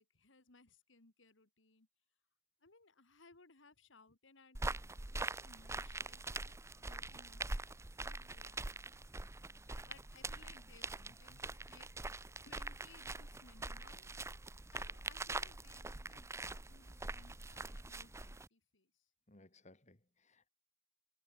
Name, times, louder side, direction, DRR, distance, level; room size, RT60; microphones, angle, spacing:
voice 1, 0.0-1.9 2.6-8.7 9.8-11.9 12.5-14.2 14.7-19.1, left 3 dB, 90° left, 2.3 m, -64 dB
sound 1, 4.5-18.5, right 2 dB, 15° right, 0.7 m, -44 dB
voice 2, 11.1-11.4 19.3-20.5, left 1 dB, 40° left, 3.0 m, -63 dB
head